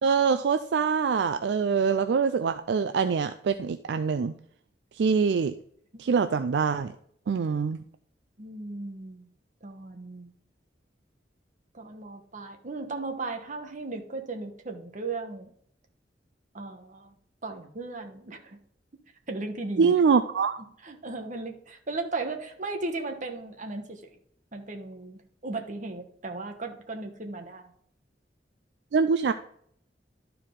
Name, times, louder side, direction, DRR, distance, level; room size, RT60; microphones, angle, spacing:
voice 1, 0.0-4.3 5.0-5.5 6.0-6.9 7.3-7.8 19.8-20.6 28.9-29.3, right 5 dB, 70° right, 10 dB, 0.4 m, -24 dB
voice 2, 8.4-9.2 9.6-10.3 11.7-15.5 16.5-17.1 17.4-18.6 19.3-19.9 20.8-24.0 24.5-27.7, right 3 dB, 45° right, 4 dB, 1.2 m, -36 dB
12.0 x 4.7 x 3.7 m, 0.65 s
head